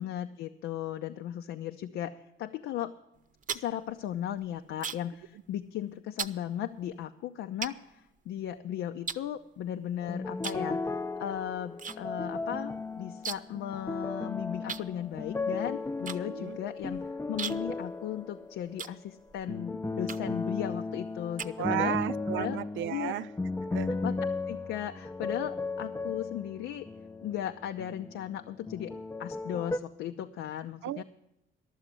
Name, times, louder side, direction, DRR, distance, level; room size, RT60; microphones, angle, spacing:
voice 1, 0.0-2.9 3.5-22.0 22.3-22.6 22.9-23.1 23.9-24.2 24.5-26.9 27.2-28.9 29.2-31.0, left 11 dB, 85° left, 0.6 m, -36 dB
sound 1, 3.1-5.2 5.5-5.8 6.2-6.4 7.0-7.1 7.6-8.6 9.1-9.9 10.4-10.7 11.0-12.0 12.2-12.3 12.6-13.6 13.9-14.0 14.7-19.5 20.0-20.5 20.9-22.0, right 6 dB, 40° right, 0.7 m, -39 dB
sound 2, 10.0-19.0 19.5-28.4 28.7-29.8, left 3 dB, 15° left, 0.5 m, -35 dB
voice 2, 16.3-16.6 21.6-23.3 23.7-23.9 30.8-31.0, right 13 dB, 75° right, 0.5 m, -33 dB
12.0 x 7.1 x 9.7 m
cardioid pair, 90°, 20 cm